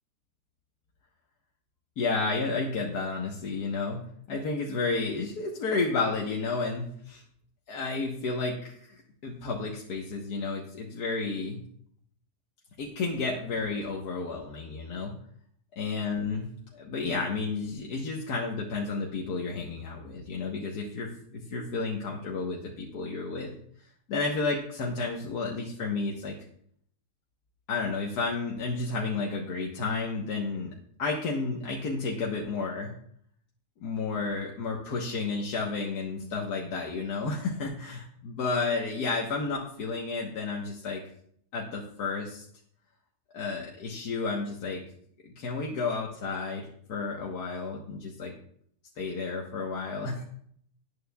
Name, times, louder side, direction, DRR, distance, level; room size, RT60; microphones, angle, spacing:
voice 1, 2.0-4.0 4.3-7.2 7.7-11.6 12.8-15.1 15.8-16.5 16.7-23.5 24.1-26.4 27.7-30.7 31.0-32.9 33.8-41.0 41.5-42.5 43.3-44.8 45.2-48.3 49.0-50.2, left 4 dB, 80° left, -1 dB, 1.7 m, -31 dB
18.0 x 9.2 x 2.3 m, 0.65 s
omnidirectional pair, 1.7 m